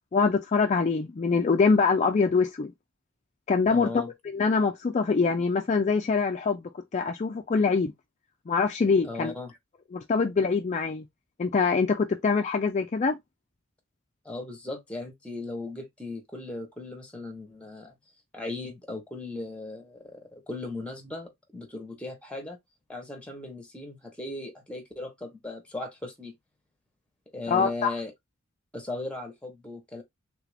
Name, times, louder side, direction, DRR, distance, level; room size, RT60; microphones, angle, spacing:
voice 1, 0.1-2.7 3.5-3.9 4.3-6.6 6.9-7.9 8.5-9.3 9.9-11.1 11.4-13.2 27.5-28.0, left 4 dB, 35° left, 0.4 m, -24 dB
voice 2, 3.7-4.1 9.0-9.5 14.2-17.9 18.3-22.6 22.9-26.3 27.3-28.1 28.7-30.0, left 2 dB, 5° left, 0.9 m, -37 dB
3.4 x 2.5 x 3.3 m
head